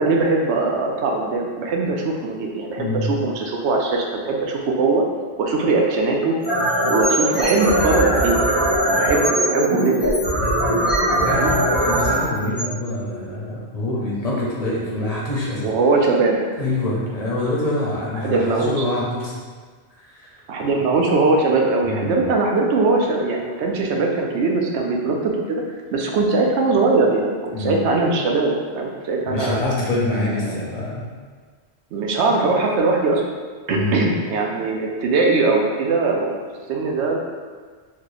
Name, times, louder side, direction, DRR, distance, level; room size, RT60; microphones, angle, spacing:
voice 1, 0.0-5.0 5.4-6.4 6.9-10.2 11.3-11.6 15.0-15.1 15.6-16.4 18.2-18.8 20.5-25.6 25.9-29.6 30.4-30.6 31.9-33.2 33.7-36.4 36.7-37.2, right 3 dB, 80° right, 0 dB, 0.9 m, -21 dB
voice 2, 2.8-3.2 11.2-15.7 16.6-19.3 20.0-20.4 21.8-22.3 27.5-27.8 29.2-31.1 33.7-34.1, left 1 dB, 45° left, -5 dB, 0.6 m, -25 dB
sound 1, 6.4-13.4, right 1 dB, 20° right, 1.0 m, -20 dB
3.1 x 2.3 x 3.9 m, 1.5 s
omnidirectional pair, 1.2 m